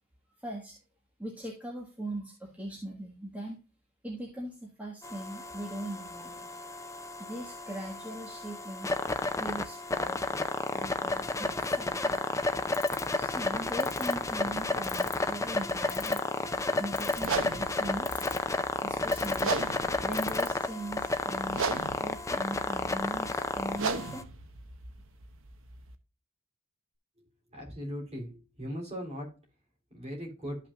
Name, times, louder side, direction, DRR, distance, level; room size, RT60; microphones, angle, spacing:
voice 1, 0.4-0.8 1.2-3.6 4.0-6.5 7.2-8.9 9.4-10.4 10.7-12.3 13.1-16.2 16.8-18.3 18.8-19.6 20.0-24.2, right 1 dB, 5° right, -2 dB, 1.5 m, -40 dB
sound 1, 5.0-24.2, left 2 dB, 15° left, 0.5 m, -32 dB
sound 2, 12.7-13.1 13.8-14.1 14.8-15.3 15.9-16.4 17.0-17.4 18.1-18.5 19.1-19.4 20.1-20.5, left 16 dB, 60° left, 1.9 m, -40 dB
sound 3, 17.2-25.9, right 4 dB, 60° right, 0.9 m, -37 dB
voice 2, 27.5-29.3 29.9-30.6, equal, 30° right, 1 dB, 3.4 m, -38 dB
13.0 x 5.8 x 2.3 m, 0.34 s
head